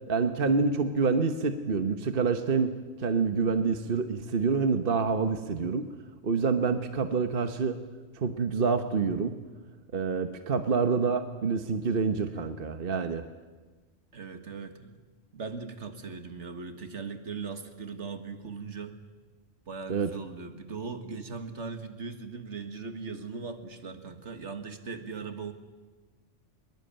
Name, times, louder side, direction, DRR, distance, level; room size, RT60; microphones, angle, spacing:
voice 1, 0.1-2.7 3.0-5.9 6.2-7.8 8.2-9.4 9.9-13.2 19.9-20.1, right 5 dB, 50° right, 8 dB, 1.2 m, -27 dB
voice 2, 14.1-15.0 15.3-19.0 19.7-25.5, right 4 dB, 70° right, 8 dB, 2.0 m, -39 dB
21.5 x 21.5 x 9.0 m, 1.3 s
omnidirectional pair, 1.3 m